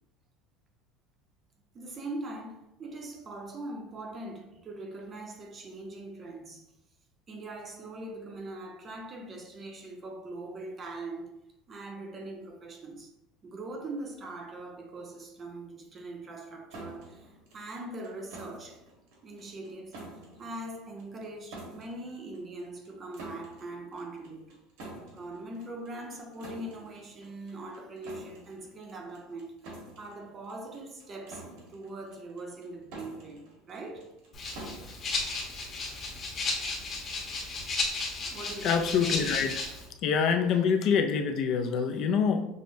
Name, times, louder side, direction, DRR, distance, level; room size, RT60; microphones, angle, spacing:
voice 1, 1.7-6.7 7.3-11.4 11.7-13.1 13.4-18.8 19.2-20.0 20.4-24.5 25.1-34.1 38.2-38.8, right 2 dB, 25° right, 0.6 m, -41 dB
sound 1, 16.7-36.1, right 2 dB, 80° right, 1.2 m, -49 dB
Rattle (instrument), 34.3-39.9, left 3 dB, 30° left, 0.9 m, -34 dB
voice 2, 38.6-39.7 40.0-42.4, left 6 dB, 45° left, 0.3 m, -26 dB
6.1 x 2.0 x 2.6 m
cardioid pair, 160°, 0 cm